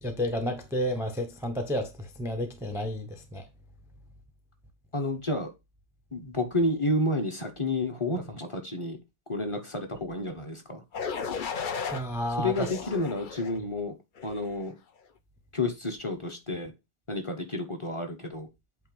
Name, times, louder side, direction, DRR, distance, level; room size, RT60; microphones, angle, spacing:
voice 1, 0.0-3.5 11.9-12.7, equal, 5° right, 0.7 m, -31 dB
voice 2, 4.9-5.5 6.1-9.0 9.3-10.8 12.4-13.9 14.2-14.7 15.5-16.7 17.1-18.5, left 2 dB, 25° left, 1.1 m, -30 dB
sound 1, 10.9-12.0 12.5-13.6 14.2-14.5, left 6 dB, 50° left, 0.8 m, -34 dB
8.3 x 2.8 x 5.4 m
omnidirectional pair, 1.2 m